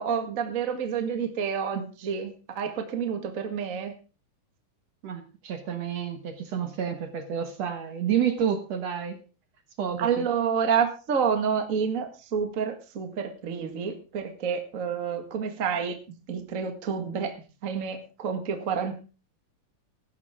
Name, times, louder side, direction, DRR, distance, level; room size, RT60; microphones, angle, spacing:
voice 1, 0.0-3.9 10.0-16.0 16.3-17.3 17.6-19.0, right 6 dB, 30° right, 6 dB, 1.6 m, -29 dB
voice 2, 5.0-9.2 9.8-10.3, right 8 dB, 60° right, 7 dB, 2.3 m, -29 dB
16.5 x 13.0 x 3.7 m, 0.34 s
omnidirectional pair, 3.9 m